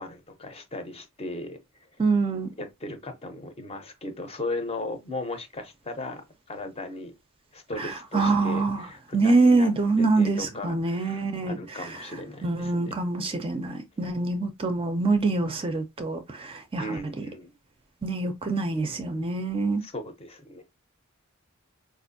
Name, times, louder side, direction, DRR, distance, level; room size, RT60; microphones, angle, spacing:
voice 1, 0.0-1.6 2.6-6.2 6.5-7.1 7.5-9.0 9.2-9.7 10.2-12.9 16.8-17.5 19.8-20.6, left 2 dB, 30° left, 0.6 m, -36 dB
voice 2, 2.0-2.5 7.8-8.9 9.1-12.1 12.4-17.3 18.0-19.8, right 3 dB, 25° right, 0.4 m, -25 dB
4.3 x 2.5 x 2.6 m
head